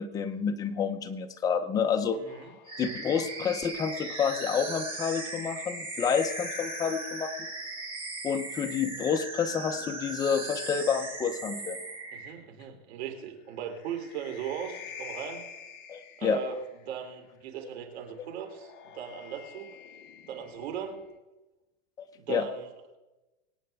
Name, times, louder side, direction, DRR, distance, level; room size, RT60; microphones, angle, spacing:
voice 1, 0.0-2.2 2.8-7.3 8.2-11.8 15.9-16.4 22.0-22.5, left 7 dB, 10° left, 6 dB, 0.5 m, -29 dB
voice 2, 2.1-2.5 12.1-15.4 16.2-16.6 16.9-19.7 20.3-21.0 22.1-22.7, right 8 dB, 75° right, 3 dB, 3.0 m, -38 dB
sound 1, 2.3-7.8 9.2-12.2 13.5-17.0 18.2-21.2, left 7 dB, 35° left, 1.1 m, -49 dB
sound 2, 2.7-12.3, right 3 dB, 15° right, 1.6 m, -38 dB
24.5 x 8.7 x 3.4 m, 1.1 s
supercardioid pair, 165°, 32 cm